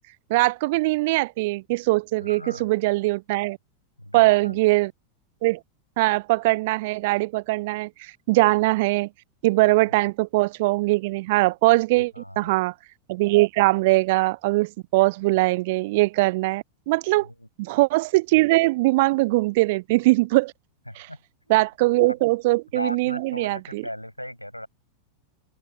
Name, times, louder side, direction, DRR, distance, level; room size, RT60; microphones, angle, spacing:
voice 1, 0.3-3.6 4.1-4.9 5.4-5.6 6.0-9.1 9.4-12.7 13.1-17.3 17.6-20.5 21.0-21.1 21.5-23.8, right 22 dB, 50° right, 0.4 m, -21 dB
voice 2, 2.2-2.7 4.0-4.6 9.9-10.0 12.1-12.5 17.2-17.5 20.9-21.2 21.5-21.6 22.1-22.2 22.7-24.7, equal, 90° left, 6.4 m, -37 dB
open air
figure-of-eight pair, 90°, 0 cm